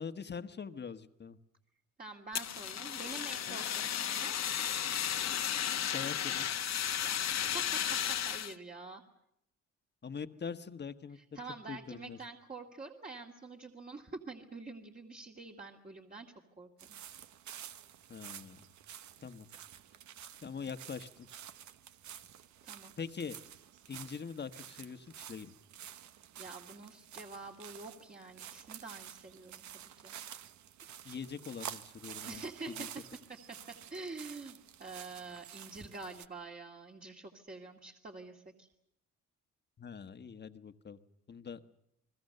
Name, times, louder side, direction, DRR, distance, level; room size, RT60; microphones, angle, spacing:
voice 1, 0.0-1.4 5.9-6.5 10.0-11.4 11.7-12.2 18.1-18.7 19.2-19.5 20.4-21.3 23.0-23.4 23.9-25.5 31.0-32.9 39.8-41.0 41.3-41.6, left 6 dB, 35° left, 9 dB, 1.3 m, -43 dB
voice 2, 2.0-4.4 7.0-7.8 8.3-9.0 11.2-16.3 16.6-17.0 22.6-22.9 26.4-30.1 32.3-32.9 33.9-38.7, right 3 dB, 30° right, 0 dB, 2.4 m, -47 dB
Fire, 2.3-8.5, left 10 dB, 60° left, 1.3 m, -34 dB
sound 1, 16.8-36.3, right 10 dB, 70° right, 1.1 m, -50 dB
30.0 x 21.0 x 6.7 m, 0.82 s
cardioid pair, 90°, 30 cm